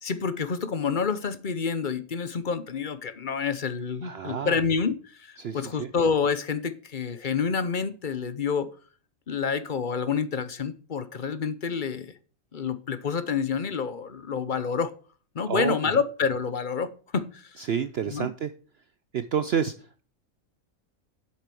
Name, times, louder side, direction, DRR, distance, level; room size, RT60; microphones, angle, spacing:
voice 1, 0.0-8.7 9.3-12.1 12.5-14.9 15.3-17.6 18.1-18.3, left 6 dB, 40° left, 14 dB, 0.9 m, -28 dB
voice 2, 4.0-4.6 5.4-5.9 15.5-15.9 17.6-18.5 19.1-20.0, right 7 dB, 60° right, 13 dB, 0.7 m, -29 dB
8.0 x 7.5 x 6.9 m, 0.40 s
omnidirectional pair, 1.5 m